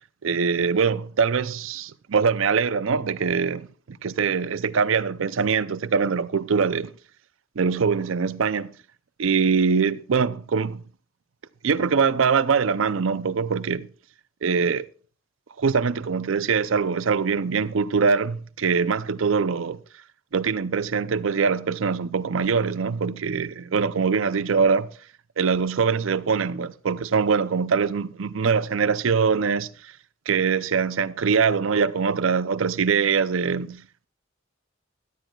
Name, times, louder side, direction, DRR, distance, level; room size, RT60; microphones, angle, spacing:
voice 1, 0.2-6.9 7.6-8.7 9.2-10.8 11.6-13.9 14.4-14.9 15.6-19.8 20.3-24.9 25.4-29.9 30.3-34.1, right 5 dB, 80° right, 0.5 m, -23 dB
17.0 x 12.0 x 2.3 m
head